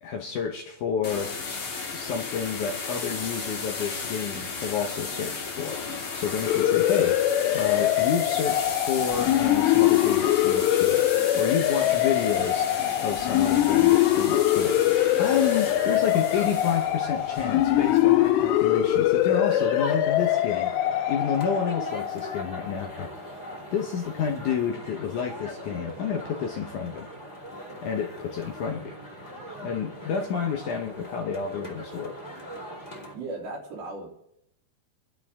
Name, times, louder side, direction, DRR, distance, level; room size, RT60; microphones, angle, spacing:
voice 1, 0.0-1.3 1.9-5.8 6.1-7.2 7.5-11.0 11.3-12.7 13.0-20.7 21.1-23.1 23.7-27.1 27.8-29.0 29.6-32.5, left 7 dB, 65° left, 2 dB, 2.0 m, -30 dB
sound 1, 1.0-19.4, left 4 dB, 45° left, 2.3 m, -35 dB
sound 2, 6.5-22.9, left 13 dB, 90° left, 2.9 m, -23 dB
sound 3, 15.2-33.1, equal, 15° left, 2.2 m, -41 dB
voice 2, 23.3-23.7 33.1-34.1, right 2 dB, 80° right, -3 dB, 5.4 m, -37 dB
29.0 x 11.5 x 3.7 m, 0.77 s
omnidirectional pair, 4.8 m